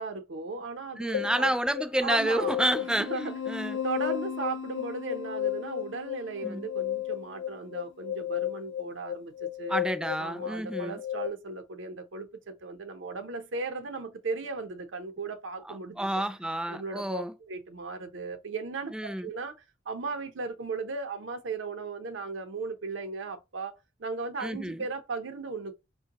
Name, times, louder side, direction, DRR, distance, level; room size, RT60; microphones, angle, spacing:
voice 1, 0.0-1.5 2.0-2.6 3.0-3.3 3.7-9.8 10.2-16.2 16.7-19.5 19.9-23.7 24.0-25.8, right 4 dB, 85° right, 0.7 m, -36 dB
voice 2, 1.0-3.8 6.4-6.7 9.7-11.0 15.6-17.3 18.9-19.3 24.4-24.9, right 1 dB, 5° right, 0.3 m, -30 dB
sound 1, 1.1-11.3, left 11 dB, 90° left, 0.4 m, -34 dB
5.1 x 2.2 x 2.8 m
head